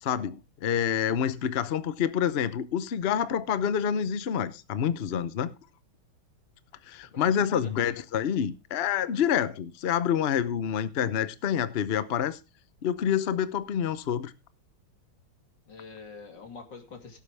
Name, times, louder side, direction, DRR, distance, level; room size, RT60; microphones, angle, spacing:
voice 1, 0.0-5.5 6.9-12.4 12.8-14.3, left 8 dB, 85° left, 0.5 m, -27 dB
voice 2, 6.9-7.7 15.7-17.2, left 4 dB, 55° left, 3.3 m, -45 dB
17.0 x 8.6 x 3.5 m
omnidirectional pair, 2.3 m